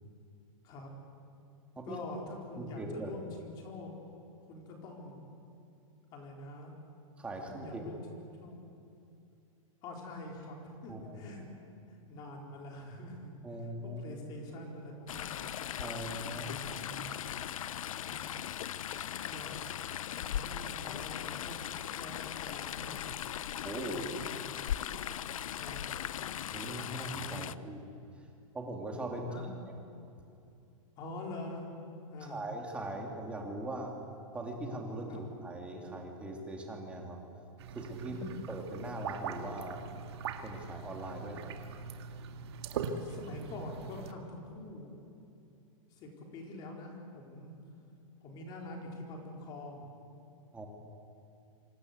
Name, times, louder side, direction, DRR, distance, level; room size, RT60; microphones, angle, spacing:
voice 1, 1.9-3.9 4.4-5.2 6.1-6.7 7.5-8.6 9.8-11.7 12.1-13.3 13.8-15.3 16.3-17.1 17.9-18.2 19.2-19.6 20.2-21.6 22.0-22.1 22.4-23.1 23.9-24.4 25.5-25.8 27.3-27.5 29.3-29.5 31.0-31.7 32.1-32.5 35.1-35.2 38.1-38.3 43.0-44.9 45.9-47.5 48.2-49.9, left 2 dB, 25° left, 1 dB, 4.2 m, -45 dB
voice 2, 2.6-3.1 7.2-7.8 10.9-11.2 13.4-14.1 15.8-16.5 23.6-24.1 26.5-27.8 28.5-29.3 32.3-33.9 34.3-37.2 37.7-38.1 38.5-40.0 40.4-41.5 50.5-50.7, right 1 dB, 5° right, 1 dB, 2.7 m, -40 dB
Chatter / Stream, 15.1-27.5, left 10 dB, 80° left, 0.8 m, -39 dB
sound 1, 37.6-44.1, right 5 dB, 50° right, 2.1 m, -41 dB
27.0 x 25.5 x 8.2 m, 2.7 s
supercardioid pair, 175°, 17 cm